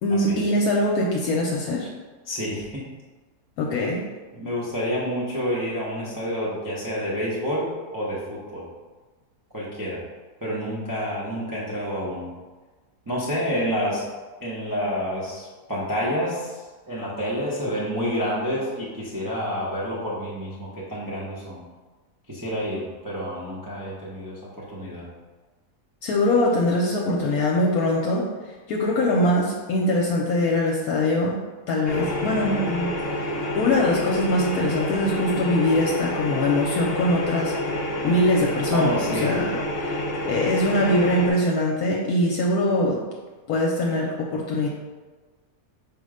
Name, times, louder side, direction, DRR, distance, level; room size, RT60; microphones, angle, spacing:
voice 1, 0.0-1.9 3.6-4.0 26.0-28.3 28.7-31.4 31.7-32.9 33.6-37.5 38.0-39.5 39.8-40.0 40.2-43.0 43.5-44.7, left 1 dB, 75° left, -2 dB, 1.0 m, -22 dB
voice 2, 2.3-2.8 4.3-8.6 9.5-10.0 10.4-12.3 13.1-14.1 14.4-16.6 16.9-21.6 22.3-25.1 38.7-39.4, equal, 25° right, -7 dB, 0.5 m, -28 dB
sound 1, 31.8-41.3, left 1 dB, 50° left, 0.8 m, -28 dB
5.1 x 2.1 x 4.8 m, 1.3 s
omnidirectional pair, 1.7 m